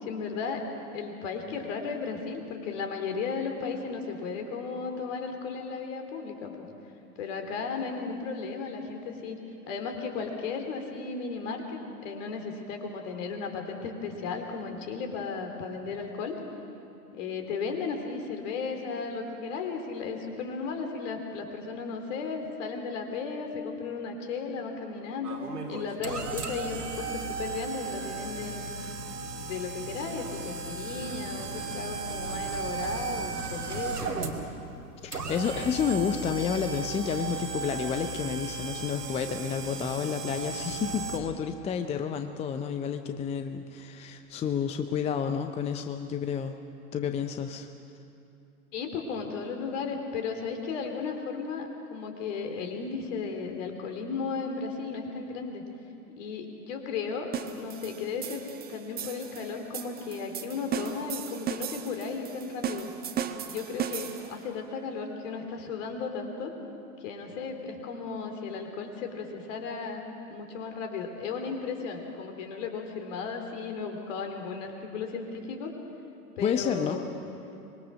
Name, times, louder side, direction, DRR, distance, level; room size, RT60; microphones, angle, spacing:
voice 1, 0.0-0.6 0.9-6.7 7.2-9.4 9.7-16.4 17.1-25.4 25.7-28.7 29.4-34.2 48.7-55.6 56.1-58.4 58.7-62.9 63.5-66.5 67.0-75.7 76.4-77.1, left 5 dB, 50° left, 4 dB, 3.6 m, -35 dB
sound 1, 25.2-41.2, right 4 dB, 90° right, 2.5 m, -36 dB
voice 2, 35.0-46.6 46.9-47.7 76.4-77.0, left 7 dB, 15° left, 7 dB, 0.6 m, -30 dB
sound 2, 57.3-64.4, right 8 dB, 20° right, 1.2 m, -36 dB
25.0 x 21.5 x 6.4 m, 2.7 s
figure-of-eight pair, 100°, 46 cm